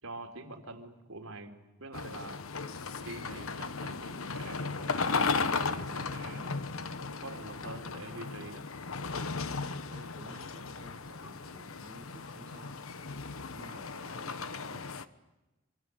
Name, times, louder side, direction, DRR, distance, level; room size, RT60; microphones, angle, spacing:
voice 1, 0.0-1.5 1.8-2.4 3.0-6.6 7.2-8.7, right 2 dB, 85° right, 5 dB, 3.6 m, -45 dB
sound 1, 1.9-15.0, left 4 dB, 85° left, 1.3 m, -36 dB
voice 2, 9.9-12.8 13.5-15.0, right 1 dB, 40° right, 3 dB, 1.8 m, -53 dB
26.0 x 25.5 x 8.3 m, 1.0 s
head